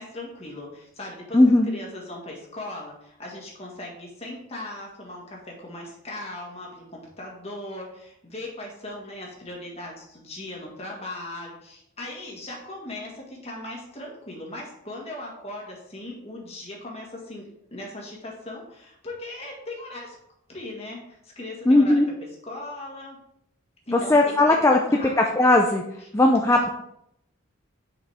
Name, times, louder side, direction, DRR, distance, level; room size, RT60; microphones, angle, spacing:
voice 1, 0.0-1.4 1.7-20.1 20.5-22.0 22.4-23.2 23.9-24.4 24.7-25.1, left 1 dB, 30° left, -2 dB, 1.7 m, -38 dB
voice 2, 1.3-1.7 21.7-22.1 23.9-24.8 25.2-25.8 26.1-26.7, left 2 dB, 15° left, 1 dB, 0.4 m, -18 dB
6.7 x 5.0 x 3.5 m, 0.76 s
head